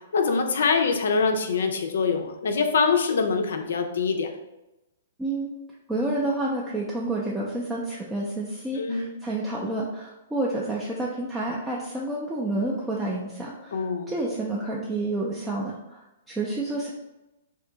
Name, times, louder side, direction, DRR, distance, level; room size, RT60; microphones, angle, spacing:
voice 1, 0.1-4.3 8.8-9.1 13.7-14.1, left 5 dB, 85° left, 5 dB, 0.4 m, -24 dB
voice 2, 5.9-16.9, right 2 dB, 5° right, -5 dB, 0.4 m, -29 dB
2.6 x 2.4 x 3.8 m, 0.95 s
hypercardioid pair, 155°, 0 cm